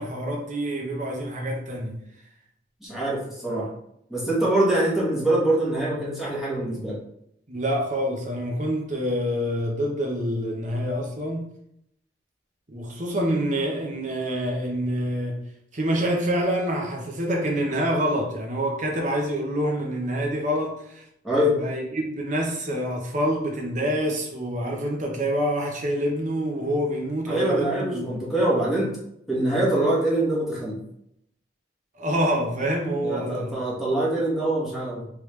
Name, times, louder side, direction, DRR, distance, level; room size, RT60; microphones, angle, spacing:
voice 1, 0.0-2.0 7.5-11.5 12.7-15.4 15.7-21.0 21.6-28.2 32.0-33.6, equal, 40° right, 0.9 m, -26 dB
voice 2, 2.8-3.7 4.1-6.9 21.2-21.6 27.3-28.9 29.3-30.8 33.0-35.0, right 1 dB, ahead, 1.2 m, -24 dB
3.4 x 3.2 x 3.2 m
head